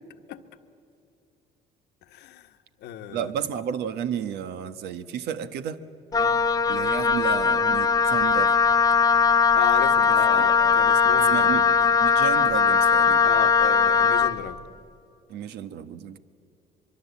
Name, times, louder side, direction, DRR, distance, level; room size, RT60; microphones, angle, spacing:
voice 1, 2.1-3.3 6.1-6.3 9.6-11.7 13.2-14.6, left 10 dB, 80° left, 8 dB, 1.4 m, -35 dB
voice 2, 3.1-5.8 6.7-8.6 10.0-10.4 11.2-13.2 15.3-16.2, right 8 dB, 75° right, 11 dB, 1.3 m, -32 dB
Wind instrument woodwind instrument, 6.1-14.4, left 6 dB, 20° left, 0.7 m, -20 dB
24.0 x 23.5 x 8.4 m, 2.8 s
cardioid pair, 110°, 17 cm